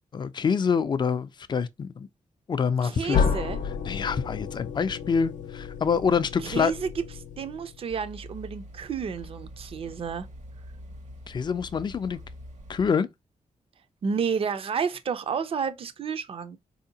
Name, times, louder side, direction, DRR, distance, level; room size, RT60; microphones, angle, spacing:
voice 1, 0.1-2.1 2.5-3.2 3.9-6.7 11.3-12.2 12.7-13.1, left 6 dB, 35° left, 0.4 m, -26 dB
voice 2, 2.8-3.6 6.4-6.9 7.4-10.3 14.0-16.6, right 6 dB, 50° right, 0.5 m, -31 dB
sound 1, 3.1-7.9, left 6 dB, 85° left, 0.6 m, -31 dB
sound 2, 7.9-12.9, equal, 80° right, 1.3 m, -44 dB
4.2 x 2.8 x 2.7 m
wide cardioid pair, 160°, 13 cm